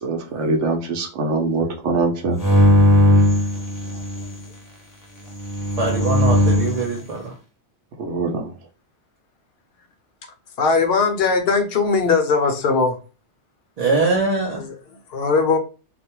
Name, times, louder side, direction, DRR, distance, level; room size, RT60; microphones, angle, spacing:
voice 1, 0.0-2.4 8.0-8.5, right 3 dB, 75° right, 2 dB, 0.9 m, -23 dB
sound 1, 2.4-4.3 5.3-6.8, left 1 dB, 25° left, 0.4 m, -17 dB
voice 2, 5.8-7.2 13.8-14.6, right 3 dB, 50° right, -1 dB, 0.4 m, -22 dB
voice 3, 10.6-13.0 14.6-15.6, left 4 dB, 65° left, 5 dB, 0.7 m, -19 dB
2.3 x 2.1 x 2.9 m, 0.34 s
omnidirectional pair, 1.2 m